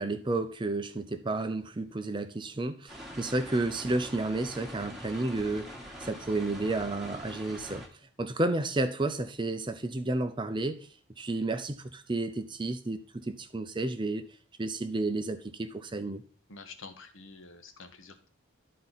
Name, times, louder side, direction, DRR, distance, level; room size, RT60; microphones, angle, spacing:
voice 1, 0.0-7.9 8.2-10.9 11.2-14.3 14.6-16.2, right 2 dB, 20° right, 0.5 m, -31 dB
sound 1, 2.9-7.9, equal, ahead, 1.4 m, -44 dB
voice 2, 16.5-18.3, left 4 dB, 65° left, 1.1 m, -48 dB
12.0 x 4.3 x 4.0 m
head